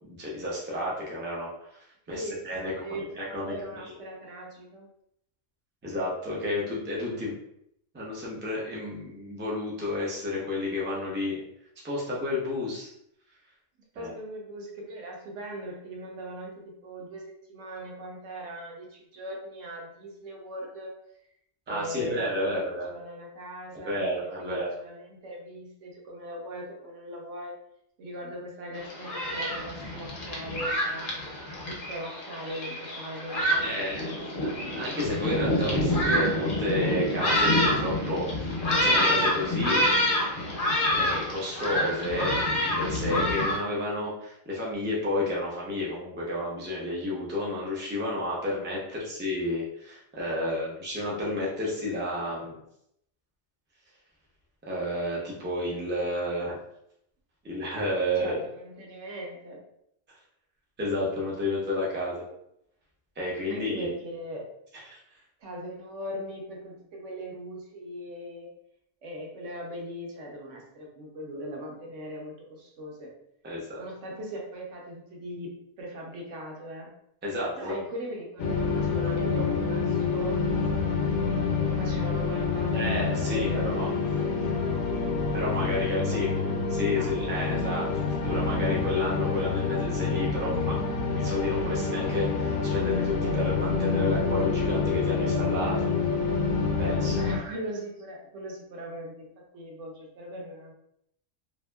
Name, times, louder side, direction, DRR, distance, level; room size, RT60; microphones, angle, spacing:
voice 1, 0.0-2.7 3.2-4.0 5.8-7.4 7.9-11.4 11.8-12.9 14.0-14.1 21.7-22.9 23.8-24.7 33.6-34.0 34.7-39.8 41.0-52.6 54.6-56.6 57.4-58.4 60.8-62.2 63.2-63.9 64.9-65.0 73.4-73.8 77.2-77.7 82.7-83.9 85.3-86.5 86.8-95.9 96.8-97.2, left 1 dB, 15° right, -4 dB, 0.3 m, -31 dB
voice 2, 2.1-4.9 13.9-20.9 21.7-27.5 28.0-31.1 31.7-34.0 34.4-34.8 58.2-59.6 63.5-64.5 65.4-68.5 69.0-73.1 73.8-76.9 77.5-80.8 81.6-83.8 84.2-85.0 86.1-87.4 97.1-100.7, right 1 dB, 65° right, 0 dB, 1.0 m, -40 dB
Thunderstorm, 28.8-43.6, left 1 dB, 50° left, 0.7 m, -27 dB
sound 1, 78.4-97.4, left 4 dB, 75° left, 0.9 m, -27 dB
2.7 x 2.5 x 2.2 m, 0.75 s
omnidirectional pair, 1.4 m